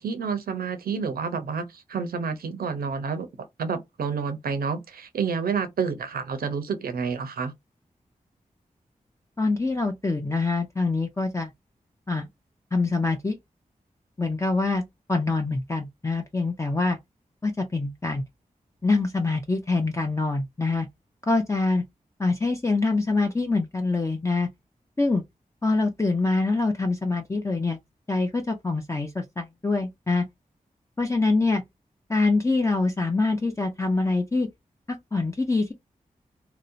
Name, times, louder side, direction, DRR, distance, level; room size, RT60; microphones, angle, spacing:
voice 1, 0.0-3.3 3.6-7.5, right 5 dB, 90° right, 0.6 m, -29 dB
voice 2, 9.4-11.5 12.1-12.3 12.7-13.4 14.2-14.8 15.1-17.0 17.4-18.2 18.8-20.9 21.3-21.8 22.2-24.5 25.0-25.2 25.6-27.8 28.1-30.2 31.0-31.6 32.1-34.5 34.9-35.7, left 3 dB, 20° left, 0.5 m, -25 dB
2.8 x 2.1 x 2.5 m
cardioid pair, 40°, 15 cm